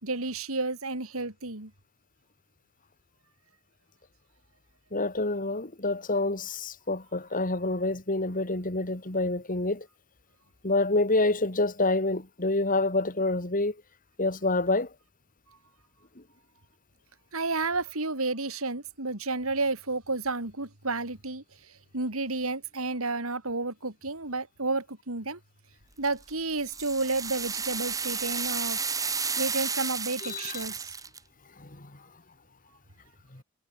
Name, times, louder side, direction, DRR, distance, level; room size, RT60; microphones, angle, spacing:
voice 1, 0.0-1.7 17.3-21.4 21.9-25.4 26.0-28.8 29.4-30.9, right 3 dB, 75° right, 3.7 m, -31 dB
voice 2, 4.9-9.9 10.6-13.7 14.2-14.9 30.2-30.6 31.6-32.0 33.3-33.4, left 2 dB, 40° left, 2.9 m, -27 dB
sound 1, 26.0-31.2, right 5 dB, 15° right, 1.3 m, -32 dB
head